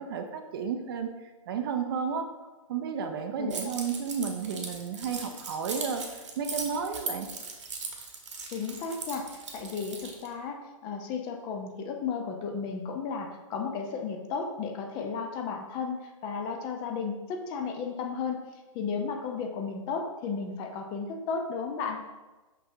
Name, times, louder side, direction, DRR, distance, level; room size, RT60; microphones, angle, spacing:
voice 1, 0.0-2.3 2.7-7.3, right 6 dB, 45° right, 6 dB, 0.6 m, -32 dB
Keys jangling, 3.5-10.3, right 4 dB, 60° right, 1.2 m, -39 dB
voice 2, 8.5-18.4 18.7-22.0, left 5 dB, 25° left, 3 dB, 0.6 m, -34 dB
6.0 x 5.7 x 2.7 m, 1.2 s
figure-of-eight pair, 120°, 17 cm